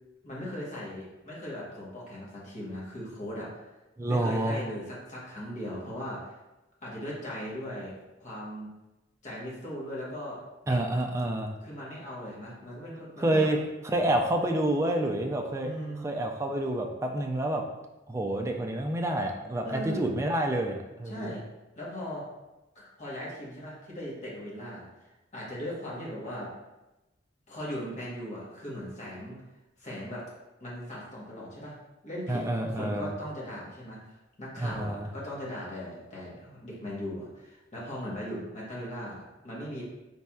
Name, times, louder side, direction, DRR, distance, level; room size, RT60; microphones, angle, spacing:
voice 1, 0.2-3.5 4.1-6.3 6.8-8.7 9.2-10.4 10.6-10.8 11.6-13.5 15.6-16.1 19.6-20.1 21.0-21.4 21.8-22.2 22.7-24.9 25.3-26.5 27.5-29.4 29.8-30.2 30.6-31.7 32.0-34.0 34.4-39.8, equal, 40° left, -6 dB, 1.1 m, -38 dB
voice 2, 4.0-4.6 10.7-11.5 13.2-13.6 13.8-15.7 16.0-17.6 18.1-21.4 32.3-33.1 34.6-35.1, right 1 dB, 15° right, 2 dB, 0.3 m, -28 dB
4.1 x 3.2 x 2.3 m, 1.0 s
head